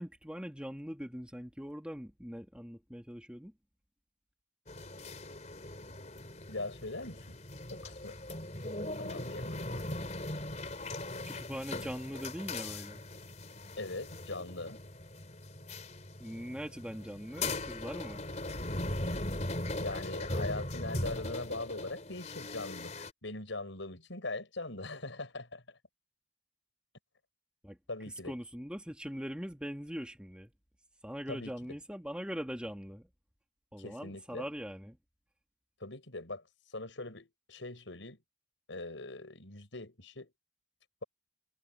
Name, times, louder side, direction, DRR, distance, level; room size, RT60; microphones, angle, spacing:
voice 1, 0.0-3.5 11.3-13.0 16.2-18.2 27.6-27.8 28.2-30.5 31.0-33.1 33.7-35.0, equal, 5° right, 2.2 m, -41 dB
sound 1, 4.7-23.1, left 2 dB, 40° left, 4.0 m, -39 dB
voice 2, 6.5-7.4 7.7-8.2 9.0-10.0 13.8-14.8 19.8-25.8 27.9-28.3 31.3-31.5 33.8-34.5 35.8-36.4 36.7-38.2 38.7-40.3, left 2 dB, 85° left, 6.1 m, -41 dB
head